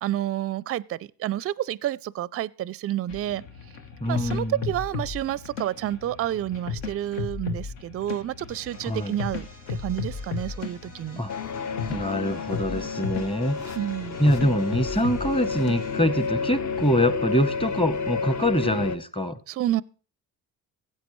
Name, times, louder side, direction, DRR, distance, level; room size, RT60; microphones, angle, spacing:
voice 1, 0.0-3.4 4.1-11.2 13.7-14.2 19.5-19.8, right 12 dB, 35° right, 0.4 m, -29 dB
sound 1, 3.1-16.8, left 5 dB, 75° left, 1.1 m, -36 dB
voice 2, 4.0-4.6 8.8-9.1 11.2-11.3 11.9-13.7 14.2-19.4, equal, 10° left, 0.9 m, -24 dB
sound 2, 8.5-16.1, right 1 dB, 90° left, 6.8 m, -51 dB
sound 3, 11.3-19.0, left 5 dB, 40° left, 0.7 m, -31 dB
16.0 x 8.2 x 3.1 m
hypercardioid pair, 55°, 43 cm